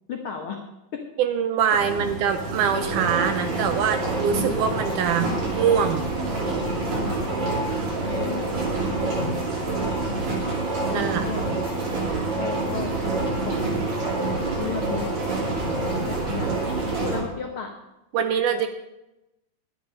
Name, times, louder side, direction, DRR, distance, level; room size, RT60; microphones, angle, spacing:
voice 1, 0.1-0.6 0.9-1.0 1.7-2.3 4.3-4.6 6.9-7.3 7.8-8.6 10.1-10.4 10.8-11.5 12.4-13.0 13.4-14.3 14.6-15.2 16.1-16.5 17.0-17.7 18.2-18.3, left 6 dB, 75° left, 2 dB, 1.2 m, -34 dB
voice 2, 1.2-6.0 9.1-9.4 10.9-11.3 18.1-18.7, right 8 dB, 80° right, 8 dB, 2.0 m, -24 dB
sound 1, 1.7-17.2, right 2 dB, 50° right, 4.0 m, -27 dB
12.0 x 10.0 x 5.3 m, 0.93 s
omnidirectional pair, 4.1 m